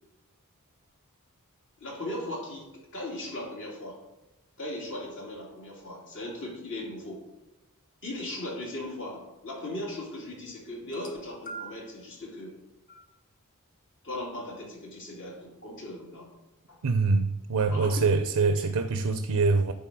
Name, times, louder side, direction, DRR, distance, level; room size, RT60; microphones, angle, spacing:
voice 1, 1.8-4.0 4.6-7.2 8.0-12.5 14.0-16.3 16.7-16.8 17.7-18.1 18.4-18.6, left 1 dB, 60° left, -3 dB, 2.7 m, -38 dB
sound 1, 10.8-12.0 12.9-13.1 14.1-14.2, right 3 dB, 40° left, 1.2 m, -43 dB
voice 2, 16.8-19.7, right 4 dB, 80° right, 9 dB, 0.5 m, -24 dB
9.9 x 4.0 x 6.1 m, 0.98 s
head